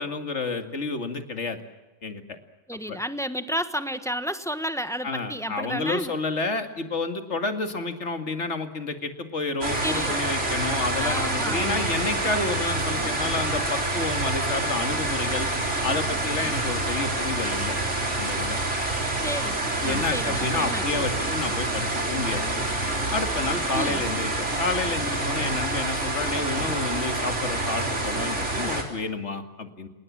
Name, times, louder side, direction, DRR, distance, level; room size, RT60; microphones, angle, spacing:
voice 1, 0.0-1.6 2.0-2.4 2.9-3.0 5.0-15.5 15.8-17.8 18.2-18.6 19.8-22.4 23.1-29.9, left 3 dB, 50° left, 6 dB, 2.5 m, -30 dB
voice 2, 2.7-6.1 9.8-10.2 11.0-11.9 19.2-20.8 23.7-24.0, equal, ahead, 9 dB, 1.1 m, -31 dB
sound 1, 9.6-28.8, right 2 dB, 50° right, 4.2 m, -27 dB
29.5 x 19.0 x 7.5 m, 1.1 s
omnidirectional pair, 1.5 m